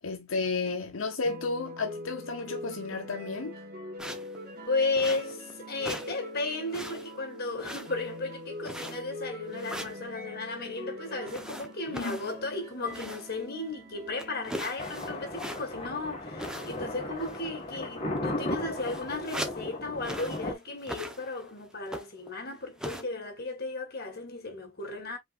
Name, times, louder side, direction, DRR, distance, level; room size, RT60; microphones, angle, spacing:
voice 1, 0.0-3.6 11.9-12.2, left 3 dB, 80° left, 0.9 m, -32 dB
sound 1, 1.2-14.5, left 1 dB, 50° right, 1.9 m, -43 dB
sound 2, 4.0-4.4 4.9-5.5 5.8-6.2 6.5-7.2 7.6-8.2 8.6-9.2 9.5-10.0 11.2-13.4 13.7-13.8 14.2-15.9 16.4-16.9 17.2-17.5 18.2-18.3 18.5-19.7 20.0-20.5 20.8-21.5 21.9-22.3 22.8-23.0, equal, 5° right, 0.8 m, -40 dB
voice 2, 4.7-25.2, left 3 dB, 50° left, 1.8 m, -34 dB
Thunder, 14.8-20.5, left 1 dB, 30° left, 2.0 m, -36 dB
5.2 x 3.9 x 2.5 m
head